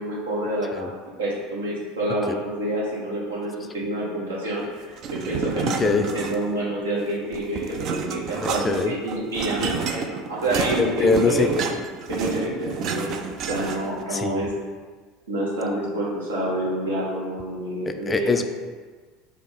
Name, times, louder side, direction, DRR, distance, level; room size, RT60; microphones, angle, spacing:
voice 1, 0.0-11.5 12.1-14.5 15.3-18.4, right 1 dB, 80° right, -5 dB, 1.2 m, -28 dB
sound 1, 5.0-6.7 7.0-14.0, right 6 dB, 50° right, 0.4 m, -30 dB
voice 2, 8.4-8.9 10.8-11.5 14.1-14.4 17.9-18.4, left 4 dB, 20° left, 7 dB, 0.4 m, -23 dB
4.4 x 2.5 x 4.0 m, 1.4 s
hypercardioid pair, 75°, 0 cm